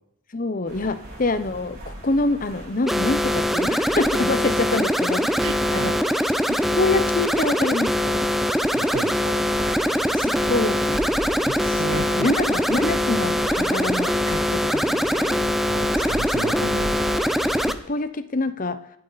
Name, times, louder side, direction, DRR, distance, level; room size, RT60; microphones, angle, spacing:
voice 1, 0.3-5.2 5.7-5.9 6.5-8.3 10.1-11.0 11.6-11.8 12.1-15.4 17.7-18.8, left 2 dB, 35° left, 12 dB, 0.8 m, -26 dB
sound 1, 0.7-17.7, right 1 dB, 45° right, 4.9 m, -38 dB
sound 2, 2.9-17.7, equal, ahead, 0.5 m, -22 dB
voice 2, 5.4-6.0 8.7-9.5 11.8-12.3 15.7-17.0, right 3 dB, 85° right, 14 dB, 0.9 m, -33 dB
24.5 x 8.7 x 4.1 m, 0.80 s
head